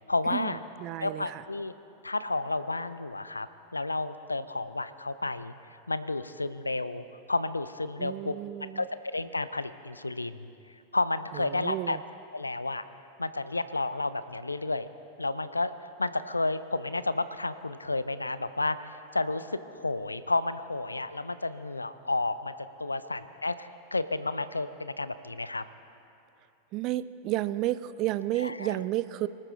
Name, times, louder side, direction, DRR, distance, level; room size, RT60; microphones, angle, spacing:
voice 1, 0.1-0.6 1.0-1.7 2.0-3.5 3.7-8.3 8.6-8.9 9.1-10.5 10.9-12.0 12.3-12.8 13.2-14.9 15.2-22.5 22.8-25.6 28.4-28.8, left 2 dB, 80° left, 14 dB, 0.5 m, -31 dB
voice 2, 0.8-1.4 8.0-8.8 11.5-12.0 26.7-29.3, right 15 dB, 40° right, 16 dB, 0.5 m, -31 dB
25.0 x 13.0 x 3.8 m, 2.6 s
figure-of-eight pair, 90°, 0 cm